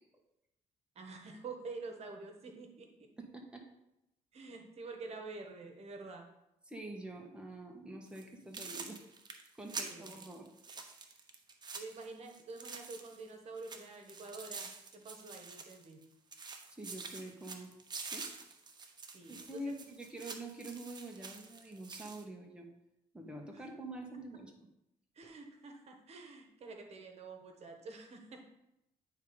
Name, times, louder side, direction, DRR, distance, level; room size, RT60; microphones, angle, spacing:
voice 1, 0.9-3.1 4.3-6.3 9.8-10.1 11.7-16.0 19.1-19.7 23.5-23.6 25.1-28.4, right 3 dB, 55° right, 3 dB, 1.3 m, -48 dB
voice 2, 3.2-3.6 6.7-9.0 9.6-10.5 16.7-17.7 18.1-18.3 19.3-22.7 23.1-24.5, right 1 dB, 5° right, 0 dB, 1.3 m, -46 dB
sound 1, 8.1-8.2 8.5-13.3 13.6-16.0 16.3-22.2, right 4 dB, 35° right, 0.9 m, -47 dB
9.0 x 3.7 x 5.2 m, 0.87 s
cardioid pair, 110°, 13 cm